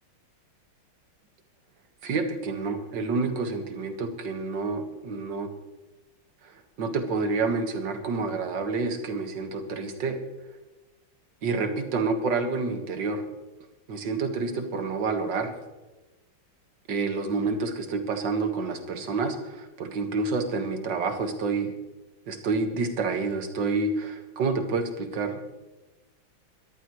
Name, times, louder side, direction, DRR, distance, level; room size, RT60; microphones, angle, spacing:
voice 1, 2.0-5.5 6.4-10.2 11.4-13.2 13.9-15.5 16.9-21.7 22.3-25.4, right 4 dB, 60° right, 6 dB, 2.3 m, -28 dB
22.5 x 14.0 x 3.2 m, 1.1 s
omnidirectional pair, 2.3 m